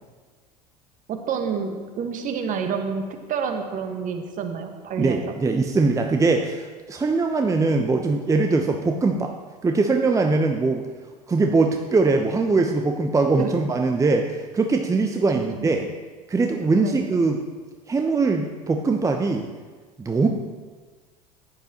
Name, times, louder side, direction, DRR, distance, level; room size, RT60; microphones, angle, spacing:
voice 1, 1.1-5.2 13.4-13.5 15.3-15.7 16.8-17.0, right 6 dB, 40° right, 5 dB, 1.5 m, -28 dB
voice 2, 5.0-9.3 9.6-10.9 11.3-15.9 16.3-17.4 17.9-19.5 20.0-20.3, right 3 dB, 15° right, 4 dB, 0.8 m, -21 dB
14.5 x 10.5 x 3.0 m, 1.4 s
figure-of-eight pair, 70°, 21 cm